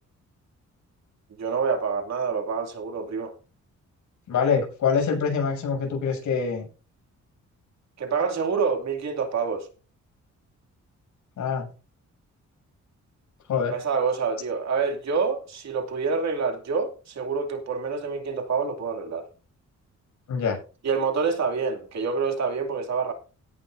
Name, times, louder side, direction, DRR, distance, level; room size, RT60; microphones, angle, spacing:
voice 1, 1.4-3.3 8.0-9.7 13.7-19.3 20.8-23.1, right 5 dB, 60° right, 2.7 m, -27 dB
voice 2, 4.3-6.6 11.4-11.7 13.5-13.8 20.3-20.6, left 6 dB, 75° left, 7.2 m, -25 dB
17.0 x 11.0 x 2.7 m
cardioid pair, 125°, 30 cm